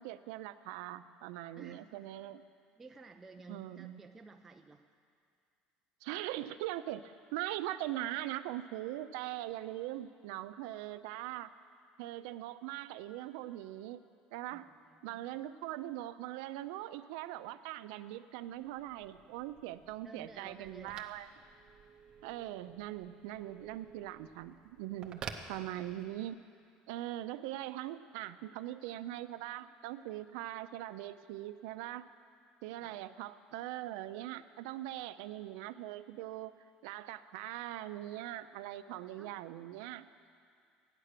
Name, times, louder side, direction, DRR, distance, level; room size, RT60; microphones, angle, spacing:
voice 1, 0.0-2.4 3.5-4.0 6.0-11.5 12.0-14.0 14.3-14.7 15.0-21.3 22.2-26.4 26.9-32.0 32.6-36.5 36.8-40.3, right 14 dB, 85° right, 12 dB, 0.5 m, -41 dB
voice 2, 1.6-2.1 2.8-4.8 14.5-15.3 20.0-21.1 32.8-33.0 39.2-39.3, right 3 dB, 10° right, 4 dB, 0.3 m, -54 dB
Telephone, 18.5-26.3, right 6 dB, 30° right, 0.7 m, -51 dB
14.0 x 9.8 x 6.7 m, 2.3 s
cardioid pair, 180°, 3 cm